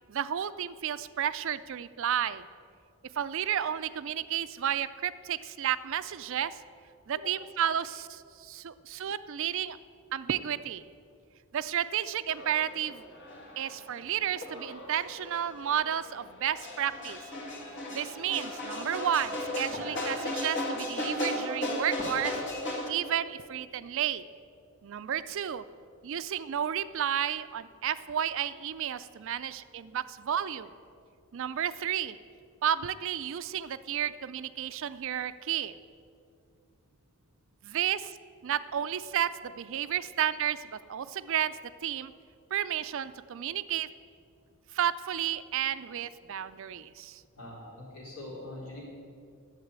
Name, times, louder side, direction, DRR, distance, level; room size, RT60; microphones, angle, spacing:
voice 1, 0.1-2.4 3.2-6.6 7.1-9.8 10.1-10.8 11.5-13.0 13.6-17.2 17.9-22.4 22.9-24.2 24.8-25.6 26.0-30.7 31.3-32.2 32.6-35.7 37.6-38.2 38.4-42.1 42.5-43.9 44.7-47.2, right 9 dB, 60° right, 14 dB, 0.4 m, -32 dB
sound 1, 12.3-22.9, left 1 dB, 55° left, 2.0 m, -36 dB
voice 2, 47.4-48.8, left 1 dB, 70° left, -4 dB, 3.8 m, -43 dB
11.0 x 8.2 x 8.1 m, 2.4 s
head